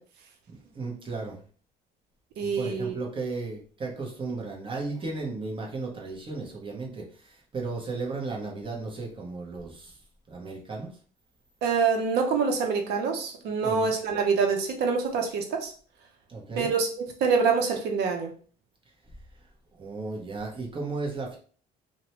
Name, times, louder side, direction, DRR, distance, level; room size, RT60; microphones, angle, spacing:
voice 1, 0.6-1.4 2.4-10.0 10.3-10.9 13.6-13.9 16.3-16.7 19.7-21.4, right 3 dB, 30° right, -2 dB, 0.9 m, -35 dB
voice 2, 2.4-2.9 11.6-15.7 16.6-16.9 17.2-18.3, right 5 dB, 75° right, 3 dB, 0.7 m, -25 dB
2.6 x 2.1 x 2.9 m, 0.43 s
cardioid pair, 110°, 17 cm